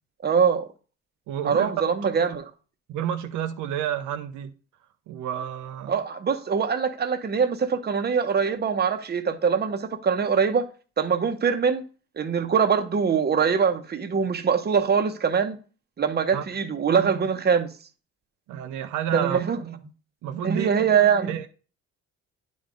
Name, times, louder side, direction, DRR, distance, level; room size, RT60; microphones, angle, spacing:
voice 1, 0.2-0.7 1.4-2.4 5.9-10.7 11.0-11.8 12.2-15.6 16.0-17.7 19.1-19.6 20.4-21.4, right 6 dB, 35° right, 0.8 m, -23 dB
voice 2, 1.3-1.7 2.9-4.5 5.1-6.0 16.3-16.5 18.5-19.4 20.2-20.7 21.3-21.5, right 10 dB, 85° right, 0.6 m, -30 dB
9.5 x 3.5 x 3.8 m
cardioid pair, 90°, 30 cm